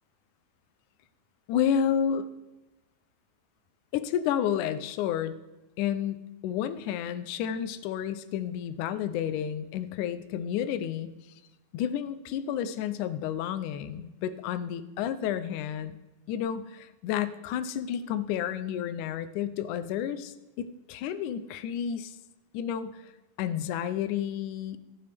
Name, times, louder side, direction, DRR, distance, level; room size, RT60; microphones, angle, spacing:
voice 1, 1.5-2.3 3.9-5.4 5.8-6.2 6.4-11.1 11.7-16.0 16.3-22.2 22.5-23.0 23.4-24.8, left 9 dB, 80° left, 12 dB, 1.8 m, -31 dB
24.0 x 8.8 x 3.5 m, 1.1 s
omnidirectional pair, 4.3 m